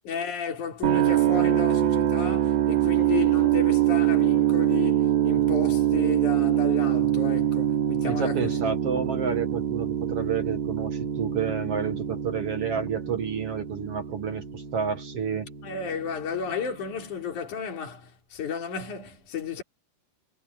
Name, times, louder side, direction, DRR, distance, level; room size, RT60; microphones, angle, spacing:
voice 1, 0.1-8.7 15.6-19.6, left 7 dB, 55° left, 5.2 m, -33 dB
sound 1, 0.8-16.8, right 12 dB, 70° right, 5.1 m, -25 dB
voice 2, 8.0-15.5, right 6 dB, 50° right, 2.1 m, -30 dB
omnidirectional pair, 4.3 m